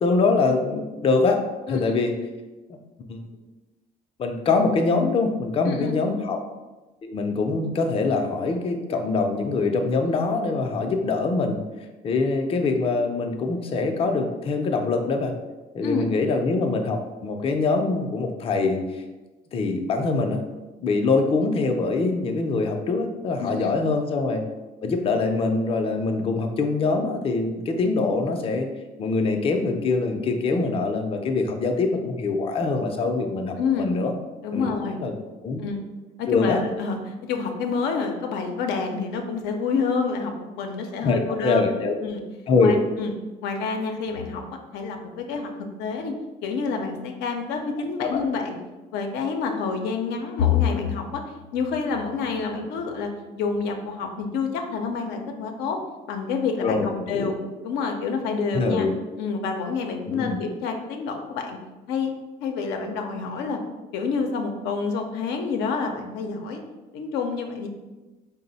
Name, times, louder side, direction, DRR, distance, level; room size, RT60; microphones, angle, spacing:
voice 1, 0.0-1.4 1.7-2.1 3.1-3.3 4.2-6.4 7.0-11.6 12.0-15.3 15.7-19.0 19.5-20.4 20.8-24.4 24.8-28.7 29.0-34.1 34.5-34.7 35.0-35.2 35.4-35.6 36.3-36.6 41.0-42.0 42.5-42.8 48.0-48.2 56.6-57.3 58.5-58.9 60.1-60.4, left 3 dB, 35° left, 4 dB, 0.4 m, -24 dB
voice 2, 5.7-6.0 15.8-16.1 23.4-23.7 33.6-33.9 34.4-35.0 35.6-35.8 36.2-40.3 40.6-41.7 42.0-42.2 42.6-43.1 43.4-44.4 44.7-45.5 45.8-46.1 46.4-48.6 48.9-51.2 51.5-53.1 53.4-55.8 56.1-57.4 57.6-58.9 59.2-61.6 61.9-62.1 62.4-63.6 63.9-66.6 66.9-67.7, left 5 dB, 90° left, 4 dB, 0.5 m, -27 dB
4.0 x 2.0 x 3.9 m, 1.2 s
cardioid pair, 110°, 17 cm